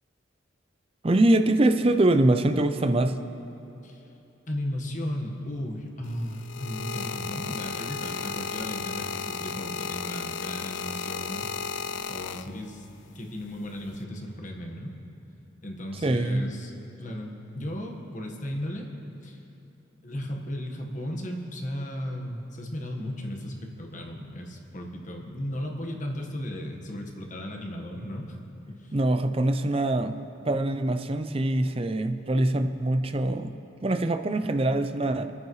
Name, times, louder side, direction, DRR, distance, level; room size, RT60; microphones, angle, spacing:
voice 1, 1.0-3.2 16.0-16.4 28.9-30.2 30.4-33.5 33.8-35.3, right 1 dB, 30° right, 9 dB, 0.5 m, -23 dB
voice 2, 4.5-11.5 12.1-12.9 13.1-14.9 15.6-18.9 19.2-19.4 20.0-28.4 28.7-28.9, equal, 40° left, 1 dB, 1.4 m, -35 dB
sound 1, 6.0-12.9 13.7-14.0, left 6 dB, 75° left, 0.4 m, -34 dB
28.0 x 9.5 x 3.2 m, 2.9 s
head